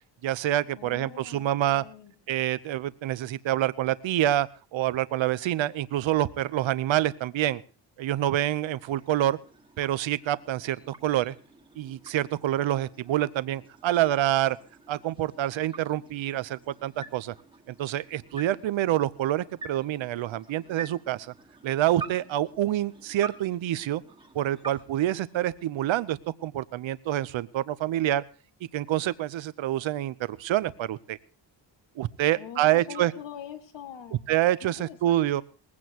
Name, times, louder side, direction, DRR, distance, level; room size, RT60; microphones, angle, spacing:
voice 1, 0.2-1.8 2.3-7.6 8.0-9.4 9.8-11.3 11.8-14.6 14.9-17.3 17.7-21.3 21.6-24.0 24.3-28.2 28.7-31.2 32.0-33.1 34.3-35.4, right 13 dB, 75° right, 16 dB, 0.8 m, -27 dB
voice 2, 0.8-2.1 32.3-34.2 34.6-35.4, left 9 dB, 65° left, 8 dB, 2.0 m, -43 dB
sound 1, 8.2-25.9, right 4 dB, 10° right, 1.7 m, -47 dB
20.5 x 16.0 x 2.9 m, 0.36 s
wide cardioid pair, 175°, 46 cm